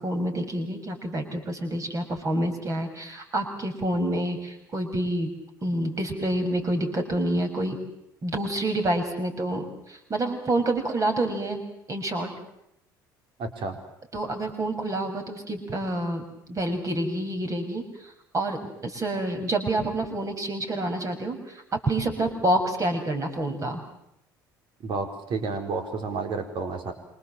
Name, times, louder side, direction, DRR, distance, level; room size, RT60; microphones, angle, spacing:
voice 1, 0.0-5.4 5.6-7.8 8.2-11.6 11.9-12.3 14.1-23.8, right 1 dB, 30° right, 4 dB, 6.7 m, -28 dB
voice 2, 13.4-13.7 24.8-26.9, right 4 dB, 45° right, 6 dB, 4.9 m, -30 dB
27.5 x 25.5 x 7.6 m, 0.78 s
figure-of-eight pair, 60°, 11 cm